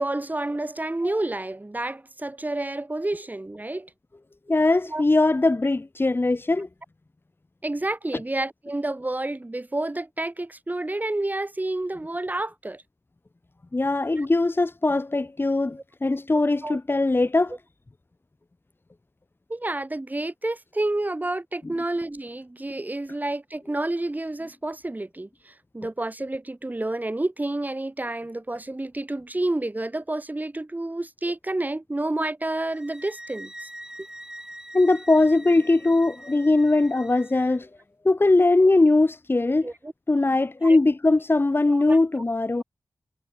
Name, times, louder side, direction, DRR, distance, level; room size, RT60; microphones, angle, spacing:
voice 1, 0.0-3.9 4.9-5.0 7.6-12.8 14.1-14.3 16.6-16.8 19.5-33.7 39.6-39.9 40.6-40.8 41.7-42.0, right 2 dB, 25° right, 2.4 m, -29 dB
voice 2, 4.5-6.7 13.7-17.5 34.7-37.7 38.0-39.7 40.1-42.6, left 2 dB, 35° left, 1.5 m, -21 dB
sound 1, 32.7-37.6, right 1 dB, 10° right, 6.8 m, -43 dB
cardioid pair, 45°, 6 cm